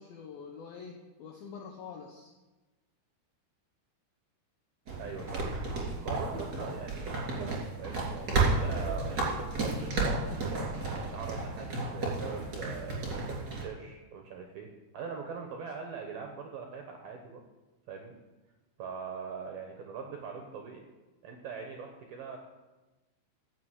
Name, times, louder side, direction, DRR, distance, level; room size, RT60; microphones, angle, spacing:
voice 1, 0.0-2.3, left 6 dB, 80° left, 0 dB, 2.2 m, -46 dB
sound 1, 4.9-13.6, right 3 dB, 30° right, 2.6 m, -32 dB
voice 2, 5.0-5.5 6.0-10.7 11.1-14.7 14.9-17.4 17.9-18.1 18.8-20.8 21.2-22.4, right 6 dB, 75° right, 3 dB, 2.2 m, -42 dB
15.0 x 6.3 x 8.2 m, 1.2 s
omnidirectional pair, 5.9 m